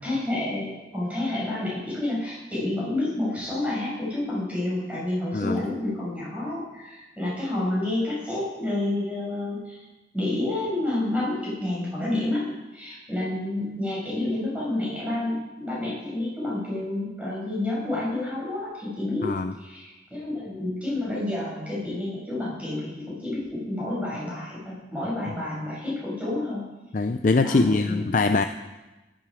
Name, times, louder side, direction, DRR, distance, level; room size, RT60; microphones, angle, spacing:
voice 1, 0.0-9.8 10.1-26.6 27.4-28.0, left 1 dB, 10° right, -7 dB, 6.2 m, -29 dB
voice 2, 19.2-19.5 26.9-28.4, left 3 dB, 45° left, 7 dB, 0.5 m, -22 dB
15.5 x 10.5 x 5.0 m, 1.1 s
head